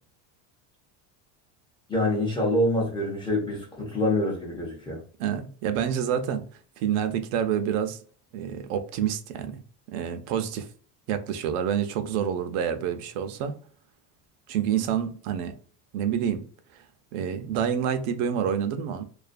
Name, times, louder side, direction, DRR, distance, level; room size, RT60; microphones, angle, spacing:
voice 1, 1.9-5.0, left 1 dB, 10° left, 0.4 m, -26 dB
voice 2, 5.2-6.4 6.8-8.0 8.3-9.6 9.9-10.7 11.1-13.5 14.5-15.5 15.9-16.4 16.7-16.8 17.1-19.0, right 8 dB, 75° right, 0.5 m, -28 dB
2.4 x 2.2 x 2.4 m
cardioid pair, 155°, 44 cm